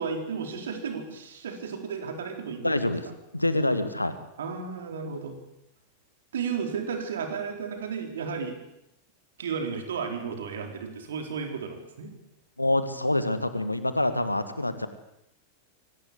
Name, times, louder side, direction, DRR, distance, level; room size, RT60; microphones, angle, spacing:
voice 1, 0.0-2.9 4.4-5.4 6.3-8.6 9.4-12.1, right 6 dB, 65° right, 5 dB, 4.1 m, -33 dB
voice 2, 2.6-3.1 3.3-4.1 12.6-14.9, left 1 dB, 85° left, 11 dB, 1.8 m, -26 dB
23.5 x 18.5 x 8.2 m, 0.83 s
figure-of-eight pair, 90°, 0 cm